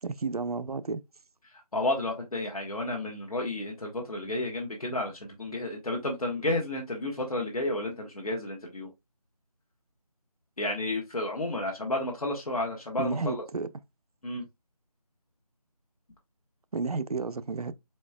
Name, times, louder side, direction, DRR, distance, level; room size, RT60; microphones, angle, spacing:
voice 1, 0.0-1.0 13.0-13.7 16.7-17.7, right 4 dB, 65° right, 0.5 m, -32 dB
voice 2, 1.5-8.9 10.6-13.4 14.2-14.4, left 2 dB, 65° left, 1.2 m, -31 dB
4.3 x 4.3 x 2.3 m
figure-of-eight pair, 175°, 20 cm